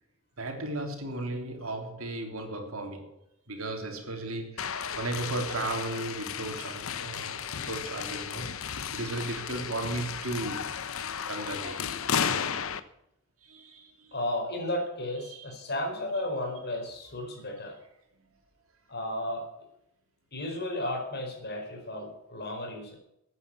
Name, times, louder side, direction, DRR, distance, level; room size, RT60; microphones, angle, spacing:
voice 1, 0.4-3.1 3.5-8.6 8.9-10.8 11.3-11.9 13.4-14.1 15.2-15.5, right 2 dB, 70° right, 3.4 m, -35 dB
sound 1, 4.6-12.8, left 7 dB, 70° left, 0.9 m, -34 dB
voice 2, 14.1-17.8 18.9-19.5 20.3-23.0, left 1 dB, 50° left, 4.9 m, -33 dB
14.5 x 9.6 x 7.1 m
head